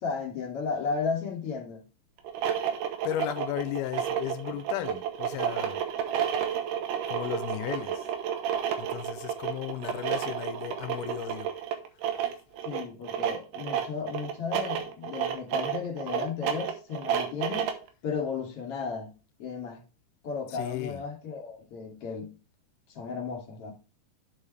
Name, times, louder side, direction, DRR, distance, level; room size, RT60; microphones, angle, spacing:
voice 1, 0.0-1.8 12.6-17.7 18.0-19.1 19.4-19.8 20.2-22.3 22.9-23.7, left 5 dB, 40° left, 3.1 m, -34 dB
sound 1, 2.2-17.9, right 9 dB, 80° right, 3.1 m, -31 dB
voice 2, 3.0-5.8 7.1-8.1 8.8-11.5 12.1-12.2 20.5-21.0, left 12 dB, 85° left, 2.5 m, -35 dB
7.6 x 7.3 x 3.3 m
omnidirectional pair, 4.6 m